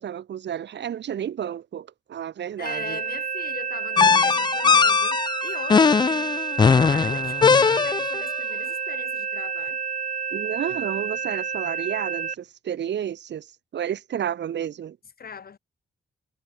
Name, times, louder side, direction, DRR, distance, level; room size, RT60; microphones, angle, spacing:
voice 1, 0.0-3.0 10.3-13.5 13.7-15.0, right 9 dB, 75° right, 2.2 m, -31 dB
voice 2, 2.6-6.0 6.8-9.8 15.2-15.6, left 6 dB, 55° left, 4.5 m, -40 dB
sound 1, 2.7-12.4, right 6 dB, 45° right, 1.3 m, -30 dB
sound 2, 4.0-8.3, left 5 dB, 25° left, 0.3 m, -19 dB
cardioid pair, 75°, 18 cm